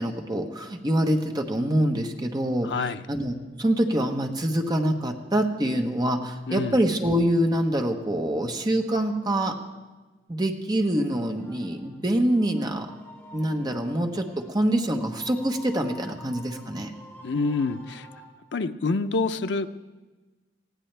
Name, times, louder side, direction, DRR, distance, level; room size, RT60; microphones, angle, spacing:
voice 1, 0.0-2.7 3.1-9.5 10.3-12.9 13.3-16.9, right 1 dB, 25° right, 4 dB, 1.1 m, -25 dB
voice 2, 2.6-3.0 6.5-6.8 17.2-18.1 18.5-19.7, left 3 dB, 75° left, 10 dB, 0.6 m, -27 dB
sound 1, 11.4-18.2, equal, 10° left, 3.2 m, -48 dB
19.5 x 15.5 x 3.4 m, 1.3 s
head